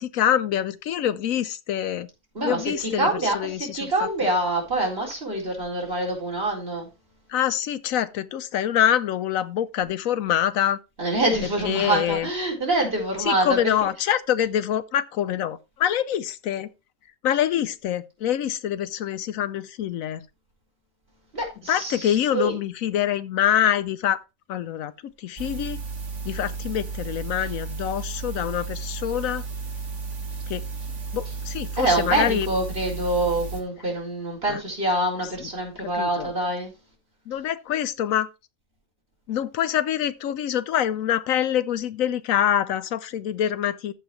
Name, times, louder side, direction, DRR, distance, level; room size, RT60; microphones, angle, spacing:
voice 1, 0.0-2.1 2.4-4.1 7.3-10.8 11.6-12.3 13.2-16.7 17.2-20.2 21.7-24.2 24.5-25.8 26.2-29.4 30.5-30.6 31.1-32.5 34.5-34.6 35.4-35.5 35.8-36.3 37.3-38.3 39.3-43.9, left 10 dB, 75° left, 1.0 m, -25 dB
voice 2, 2.3-6.9 11.0-13.6 21.3-22.5 31.8-36.7, right 2 dB, 45° right, 4.4 m, -25 dB
sound 1, 25.4-33.6, right 4 dB, 60° right, 2.1 m, -33 dB
14.0 x 5.8 x 3.1 m
omnidirectional pair, 1.4 m